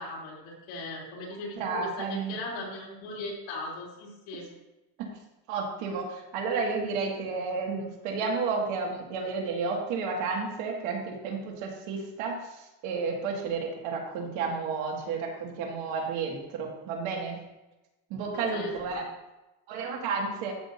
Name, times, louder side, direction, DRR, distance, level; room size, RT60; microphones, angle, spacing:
voice 1, 0.0-4.5 18.3-19.0, left 2 dB, 75° left, -3 dB, 3.3 m, -39 dB
voice 2, 1.6-2.4 5.0-5.1 5.5-17.4 18.1-19.0 19.7-20.5, right 4 dB, 80° right, 0 dB, 2.1 m, -32 dB
13.5 x 6.2 x 2.7 m, 1.0 s
cardioid pair, 170°, 47 cm